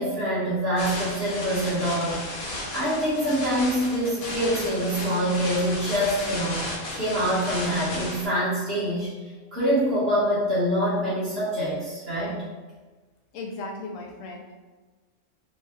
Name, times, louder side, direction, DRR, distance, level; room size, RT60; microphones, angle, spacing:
voice 1, 0.0-9.1 9.5-12.4, equal, 50° right, -10 dB, 1.7 m, -25 dB
sound 1, 0.8-8.3, left 1 dB, 45° left, 0.9 m, -34 dB
voice 2, 13.3-14.5, left 2 dB, 75° left, 0 dB, 1.0 m, -36 dB
3.9 x 2.7 x 2.4 m, 1.3 s
omnidirectional pair, 1.4 m